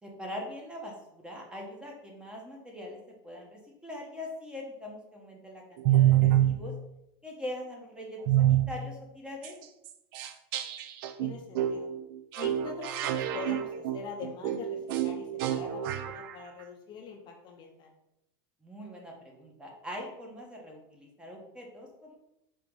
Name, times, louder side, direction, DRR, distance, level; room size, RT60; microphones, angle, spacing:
voice 1, 0.0-6.7 7.2-9.6 18.6-22.2, left 1 dB, 5° right, 0 dB, 1.0 m, -42 dB
sound 1, 5.8-6.6 8.3-8.7 9.4-9.5 9.9-10.0 10.1-16.3, right 12 dB, 70° right, 0.4 m, -27 dB
voice 2, 11.2-11.9 12.4-17.9, left 5 dB, 40° left, 2 dB, 0.6 m, -44 dB
4.7 x 3.0 x 3.7 m, 0.85 s
supercardioid pair, 130°, 12 cm